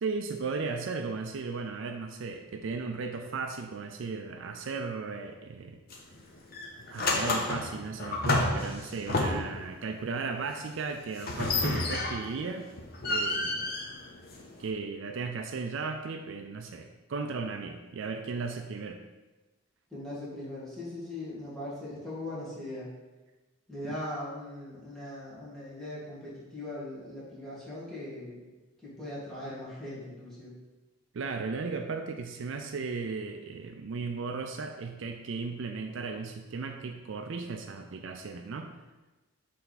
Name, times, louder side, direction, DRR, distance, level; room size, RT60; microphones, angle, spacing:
voice 1, 0.0-5.8 6.9-12.7 13.0-13.7 14.6-19.0 23.9-24.0 31.1-38.7, right 4 dB, 60° right, 5 dB, 0.4 m, -36 dB
sound 1, 5.9-6.2 6.5-9.7 11.2-12.4 12.8-14.7, left 2 dB, 45° left, 0.7 m, -30 dB
voice 2, 19.9-22.9 23.7-28.4 28.8-30.5, left 1 dB, ahead, -9 dB, 1.8 m, -40 dB
6.9 x 3.3 x 4.1 m, 1.2 s
head